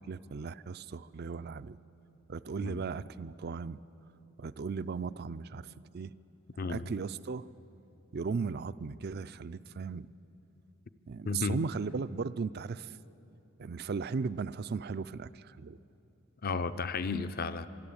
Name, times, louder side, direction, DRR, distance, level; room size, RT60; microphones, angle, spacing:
voice 1, 0.1-1.8 2.3-3.8 4.4-5.7 5.9-6.1 6.7-7.5 8.1-10.1 11.1-13.0 13.6-15.8, right 5 dB, 50° right, 16 dB, 0.4 m, -36 dB
voice 2, 6.6-6.9 11.3-11.7 16.4-17.7, left 4 dB, 45° left, 12 dB, 0.6 m, -33 dB
25.5 x 12.0 x 8.6 m, 2.9 s
head